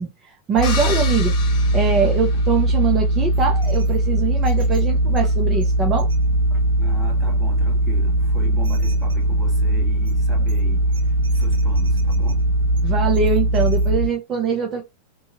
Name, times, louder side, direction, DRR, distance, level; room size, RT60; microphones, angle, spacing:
voice 1, 0.0-1.4 1.7-6.1 12.8-14.8, right 5 dB, 25° right, 0.6 m, -23 dB
sound 1, 0.6-2.8, left 6 dB, 45° left, 0.9 m, -32 dB
sound 2, 0.6-14.1, right 1 dB, 75° right, 0.6 m, -19 dB
voice 2, 6.8-12.5, equal, 10° right, 1.4 m, -38 dB
2.8 x 2.3 x 2.7 m
figure-of-eight pair, 90°, 0 cm